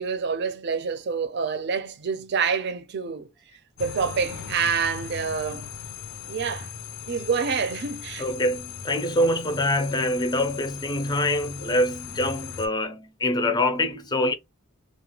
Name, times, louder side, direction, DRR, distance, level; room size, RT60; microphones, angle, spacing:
voice 1, 0.0-3.3 3.8-5.7 6.3-6.7 7.1-8.2, right 5 dB, 55° right, 0.5 m, -27 dB
sound 1, 3.8-12.7, left 7 dB, 90° left, 0.6 m, -38 dB
voice 2, 8.2-14.3, left 1 dB, 20° left, 0.5 m, -25 dB
2.4 x 2.2 x 2.9 m
head